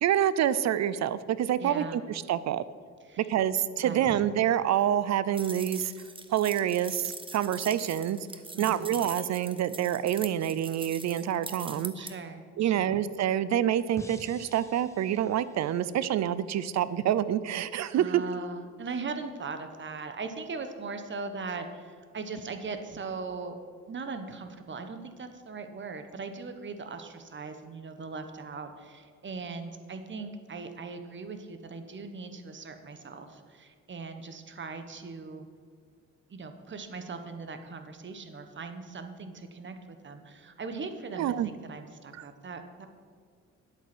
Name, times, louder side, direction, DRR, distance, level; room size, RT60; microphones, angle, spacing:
voice 1, 0.0-2.6 3.2-5.9 6.3-8.2 8.6-12.1 12.6-18.2 41.2-41.5 42.1-42.2, right 10 dB, 60° right, 16 dB, 0.6 m, -27 dB
voice 2, 1.6-2.0 3.1-3.2 3.8-4.1 8.5-8.9 11.9-13.0 17.9-23.6 23.9-35.5 36.3-42.9, right 4 dB, 40° right, 8 dB, 1.3 m, -39 dB
sound 1, 5.3-12.1, right 3 dB, 15° right, 1.0 m, -42 dB
sound 2, 14.0-17.1, left 1 dB, 10° left, 1.3 m, -50 dB
10.5 x 8.3 x 6.1 m, 2.1 s
cardioid pair, 90°, 30 cm